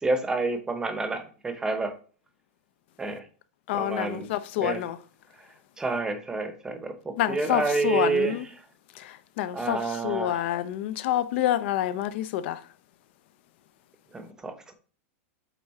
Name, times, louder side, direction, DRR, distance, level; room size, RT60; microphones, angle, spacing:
voice 1, 0.0-1.9 3.0-3.2 3.7-4.3 4.6-4.8 5.8-8.4 9.5-10.4 14.1-14.7, right 3 dB, 10° right, 0.9 m, -29 dB
voice 2, 3.7-5.0 7.2-8.5 8.9-12.6, left 12 dB, 55° left, 0.7 m, -28 dB
8.3 x 3.6 x 4.2 m
supercardioid pair, 160°, 7 cm